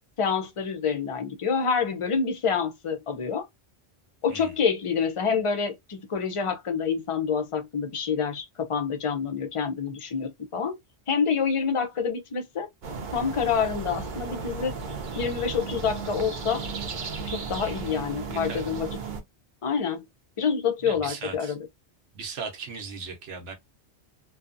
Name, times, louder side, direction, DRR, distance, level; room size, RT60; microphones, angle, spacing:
voice 1, 0.2-3.4 4.2-10.8 11.1-12.7 13.1-14.8 15.1-16.6 17.3-18.9 19.6-20.0 20.4-21.7, left 6 dB, 45° left, 0.4 m, -27 dB
sound 1, 12.8-19.2, right 4 dB, 55° right, 0.7 m, -35 dB
voice 2, 18.3-18.8 20.8-21.5 22.2-23.5, right 5 dB, 90° right, 1.0 m, -37 dB
2.7 x 2.2 x 2.4 m
omnidirectional pair, 1.1 m